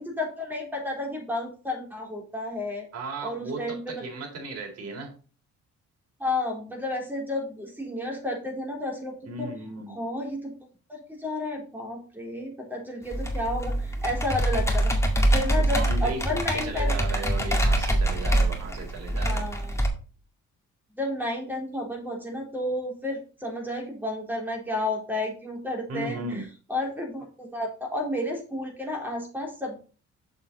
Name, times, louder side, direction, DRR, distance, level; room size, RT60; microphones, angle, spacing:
voice 1, 0.0-2.9 3.2-4.0 6.2-9.5 9.9-10.5 11.2-14.9 15.3-16.9 19.2-19.8 21.0-26.4 26.7-29.8, left 1 dB, 5° right, -1 dB, 4.0 m, -31 dB
voice 2, 2.9-5.1 9.3-10.0 15.5-19.5 25.9-26.4, right 2 dB, 55° right, 1 dB, 3.9 m, -36 dB
Computer keyboard, 13.1-19.9, right 1 dB, 10° left, 2.1 m, -24 dB
7.1 x 7.0 x 4.1 m, 0.37 s
cardioid pair, 90°, 30 cm